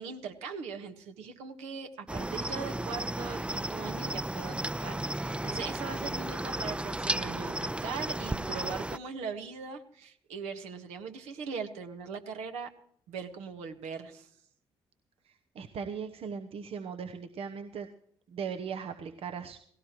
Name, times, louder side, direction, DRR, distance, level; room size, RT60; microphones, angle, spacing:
voice 1, 0.0-12.7 13.1-14.3, right 5 dB, 75° right, 6 dB, 1.6 m, -40 dB
Cricket, 2.1-9.0, right 1 dB, 10° right, 0.6 m, -34 dB
voice 2, 15.2-17.9 18.3-19.6, right 6 dB, 60° right, 7 dB, 1.0 m, -38 dB
17.5 x 17.0 x 3.1 m, 0.64 s
hypercardioid pair, 45°, 11 cm